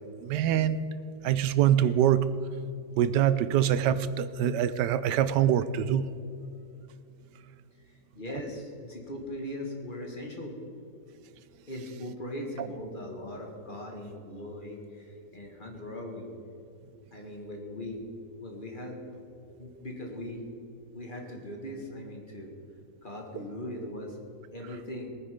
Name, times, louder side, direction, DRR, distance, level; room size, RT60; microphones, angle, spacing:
voice 1, 0.2-0.8 1.2-2.4 3.0-6.1, right 10 dB, 85° right, 14 dB, 1.3 m, -24 dB
voice 2, 7.7-10.6 11.7-16.3 17.1-18.1 18.4-20.5 20.9-22.5 23.0-24.2 24.5-25.1, left 1 dB, 30° left, 0 dB, 2.0 m, -40 dB
19.0 x 9.8 x 5.1 m, 2.7 s
omnidirectional pair, 1.8 m